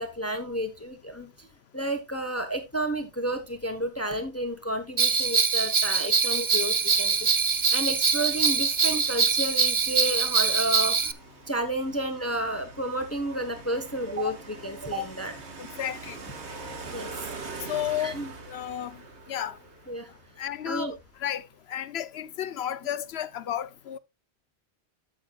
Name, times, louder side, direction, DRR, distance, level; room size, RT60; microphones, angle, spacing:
voice 1, 0.0-1.5 1.7-7.1 7.4-11.1 11.5-15.3 16.9-17.1 18.0-18.3 19.9-20.1 20.6-21.0, right 1 dB, 15° left, 1.3 m, -31 dB
Bell, 5.0-11.1, right 5 dB, 35° right, 0.6 m, -23 dB
sound 1, 5.0-21.1, right 3 dB, 90° right, 1.8 m, -45 dB
voice 2, 15.6-16.2 17.6-18.2 18.5-19.0 19.3-19.6 20.4-20.9 21.2-24.0, left 10 dB, 70° left, 0.9 m, -32 dB
13.0 x 7.7 x 2.4 m
omnidirectional pair, 1.1 m